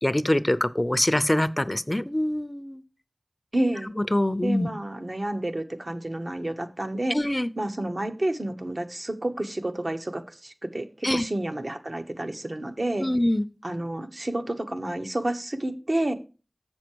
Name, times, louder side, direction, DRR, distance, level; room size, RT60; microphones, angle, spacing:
voice 1, 0.0-2.8 4.1-4.7 7.1-7.5 11.0-11.3 13.0-13.4, left 1 dB, 25° left, 15 dB, 0.5 m, -24 dB
voice 2, 3.5-3.9 4.4-7.2 7.6-13.1 13.6-16.1, right 1 dB, 55° right, 6 dB, 1.0 m, -30 dB
7.5 x 6.2 x 4.5 m, 0.33 s
wide cardioid pair, 45°, 0 cm